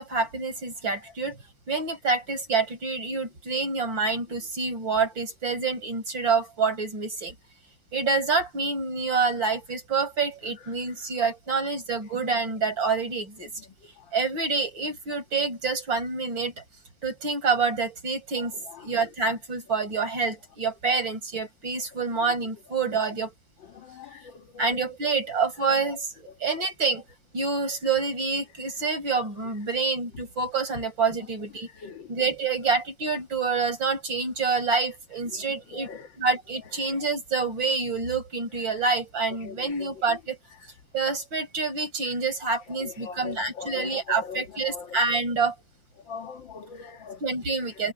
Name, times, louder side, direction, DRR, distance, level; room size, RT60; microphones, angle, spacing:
voice 1, 0.0-1.4 1.7-7.3 7.9-13.5 14.1-16.6 17.0-23.3 24.1-24.3 24.6-27.0 27.3-31.7 32.1-35.9 36.2-40.4 40.9-45.5 47.2-47.9, right 4 dB, 80° right, 6.4 m, -27 dB
voice 2, 23.7-24.7 31.8-32.1 35.3-35.5 35.7-36.1 39.4-39.9 42.8-44.9 46.1-47.2, left 6 dB, 80° left, 2.3 m, -40 dB
omnidirectional pair, 2.0 m